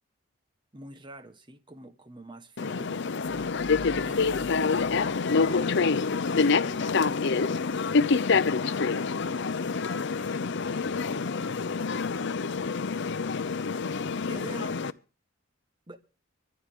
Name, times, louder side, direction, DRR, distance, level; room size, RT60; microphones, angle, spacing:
voice 1, 0.7-3.0 4.0-4.6 14.3-14.8 15.9-16.0, right 2 dB, 25° right, 1.2 m, -45 dB
sound 1, 2.6-14.9, left 4 dB, 55° left, 0.6 m, -27 dB
sound 2, 3.2-6.2, left 1 dB, 85° right, 7.0 m, -48 dB
voice 2, 6.1-8.9 9.4-11.9, left 4 dB, 40° left, 1.3 m, -49 dB
24.5 x 9.6 x 3.6 m
head